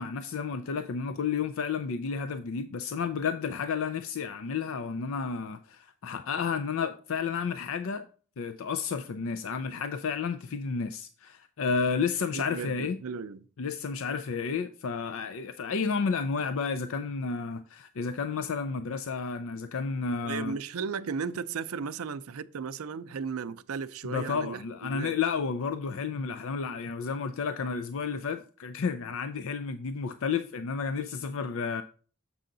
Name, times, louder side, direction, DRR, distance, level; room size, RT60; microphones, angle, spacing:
voice 1, 0.0-8.1 8.4-13.0 13.6-20.5 24.0-31.8, left 5 dB, 65° left, 0.4 m, -31 dB
voice 2, 12.3-13.5 20.2-25.1, right 5 dB, 75° right, 0.5 m, -35 dB
7.4 x 5.6 x 3.8 m
head